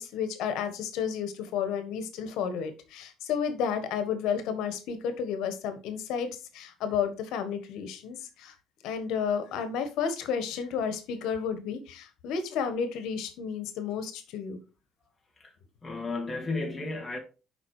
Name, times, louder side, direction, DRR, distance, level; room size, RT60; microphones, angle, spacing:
voice 1, 0.0-8.5 8.8-14.6, left 7 dB, 80° left, 1.3 m, -32 dB
voice 2, 15.8-17.2, left 3 dB, 10° left, 1.8 m, -33 dB
7.3 x 5.2 x 4.8 m
cardioid pair, 145°, 0 cm